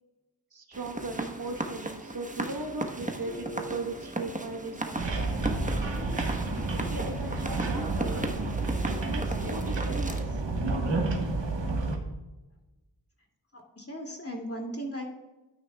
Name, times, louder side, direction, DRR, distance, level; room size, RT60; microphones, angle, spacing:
voice 1, 0.5-5.0 6.6-8.3 9.0-10.4, right 2 dB, 55° right, 4 dB, 1.3 m, -38 dB
sound 1, 0.7-10.2, right 2 dB, 20° right, 1.2 m, -36 dB
sound 2, 5.0-12.0, right 3 dB, 80° right, 1.4 m, -30 dB
voice 2, 13.5-15.0, equal, 30° left, 1 dB, 2.4 m, -37 dB
12.5 x 9.2 x 2.3 m, 1.1 s
cardioid pair, 50°, 43 cm